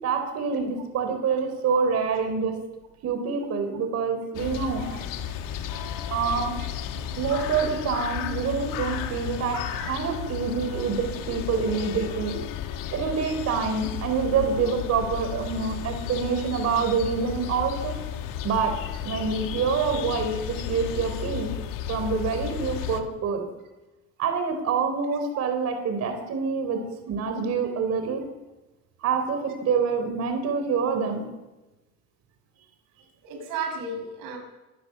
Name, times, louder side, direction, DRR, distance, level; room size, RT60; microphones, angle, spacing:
voice 1, 0.0-2.5 3.0-4.9 6.1-6.5 6.9-12.4 12.9-18.0 18.4-18.7 19.0-21.5 21.9-23.4 24.2-26.8 27.1-28.2 29.0-31.2, right 5 dB, 50° right, 6 dB, 4.3 m, -26 dB
sound 1, 4.3-23.0, left 9 dB, 85° left, 2.2 m, -33 dB
voice 2, 9.5-9.9 21.1-21.2 26.7-26.9 33.2-34.4, right 4 dB, 90° right, 3 dB, 7.5 m, -35 dB
26.0 x 15.0 x 7.1 m, 1.1 s
cardioid pair, 155°, 32 cm